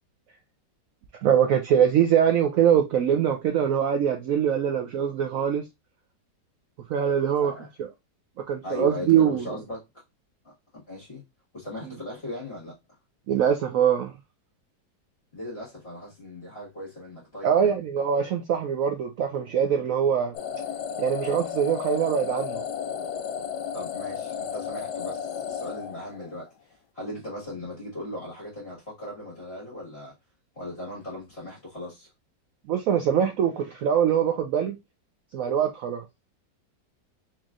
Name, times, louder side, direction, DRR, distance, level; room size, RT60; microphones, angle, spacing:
voice 1, 1.2-5.6 6.9-7.5 7.8-7.9 8.5-9.5 13.3-14.1 17.4-20.3 21.0-22.6 32.7-34.8 35.3-36.0, right 8 dB, 75° right, 0.7 m, -23 dB
voice 2, 7.4-7.7 8.6-9.8 10.4-11.2 11.5-12.8 15.3-17.7 23.7-30.1 30.6-32.1, left 1 dB, 35° left, 1.9 m, -38 dB
sound 1, 20.3-26.5, left 8 dB, 75° left, 1.2 m, -33 dB
4.4 x 3.0 x 2.4 m
omnidirectional pair, 1.9 m